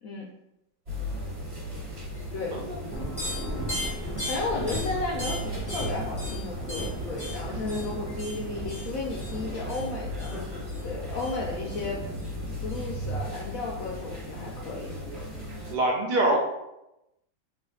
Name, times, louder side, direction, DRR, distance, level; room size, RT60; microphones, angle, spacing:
sound 1, 0.9-15.7, left 1 dB, 40° right, 1.4 m, -37 dB
voice 1, 2.3-2.6 4.3-10.3 10.8-12.0 12.6-14.9, left 3 dB, 80° left, -2 dB, 0.7 m, -33 dB
sound 2, 2.9-13.2, right 1 dB, 25° left, 0.4 m, -36 dB
voice 2, 15.7-16.4, right 2 dB, 80° right, -1 dB, 0.4 m, -24 dB
3.2 x 2.4 x 3.8 m, 0.87 s
omnidirectional pair, 2.0 m